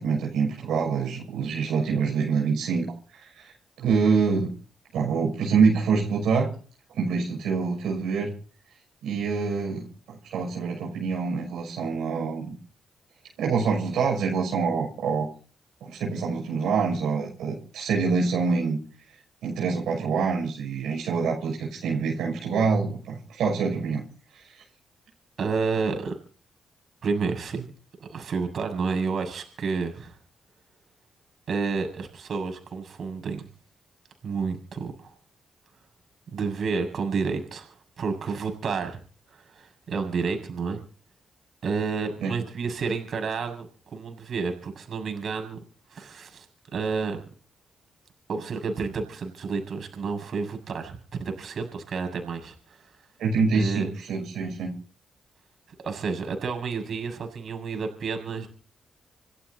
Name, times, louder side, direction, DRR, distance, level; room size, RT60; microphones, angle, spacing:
voice 1, 0.0-2.9 3.1-4.5 4.9-6.5 6.9-8.3 9.0-12.6 13.4-15.3 15.8-18.8 19.4-24.0 24.3-24.4 42.2-42.3 53.2-54.7, right 5 dB, 85° right, -1 dB, 6.4 m, -26 dB
voice 2, 25.4-26.1 27.0-27.7 28.0-30.2 31.5-33.5 34.2-35.1 36.3-39.0 39.3-40.8 41.6-45.6 45.9-46.5 46.7-47.2 48.3-52.9 53.5-53.9 55.8-58.5, right 5 dB, 65° right, 6 dB, 6.9 m, -30 dB
29.5 x 11.5 x 4.2 m, 0.41 s
cardioid pair, 65°, 0 cm